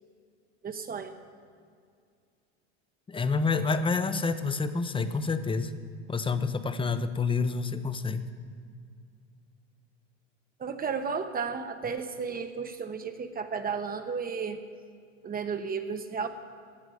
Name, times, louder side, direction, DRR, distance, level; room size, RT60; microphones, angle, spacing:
voice 1, 0.6-1.1 10.6-14.6 15.2-16.3, right 5 dB, 25° right, 7 dB, 1.0 m, -33 dB
voice 2, 3.1-5.7 6.1-8.2, left 4 dB, 15° left, 12 dB, 0.8 m, -28 dB
17.0 x 10.0 x 4.9 m, 2.2 s
hypercardioid pair, 95°, 34 cm